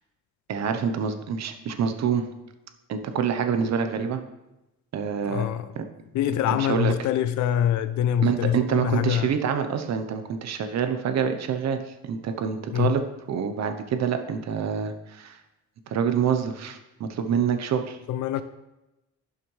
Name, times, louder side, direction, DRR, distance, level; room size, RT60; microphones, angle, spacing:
voice 1, 0.5-2.3 2.9-4.2 4.9-5.5 5.8-5.9 6.5-6.9 8.2-11.8 12.0-13.0 13.3-15.4 15.9-18.0, right 7 dB, 60° right, 0.9 m, -26 dB
voice 2, 5.2-5.7 6.1-9.3 12.7-12.9 18.1-18.4, left 10 dB, 70° left, 0.5 m, -24 dB
11.0 x 5.7 x 3.3 m
cardioid pair, 90°, 30 cm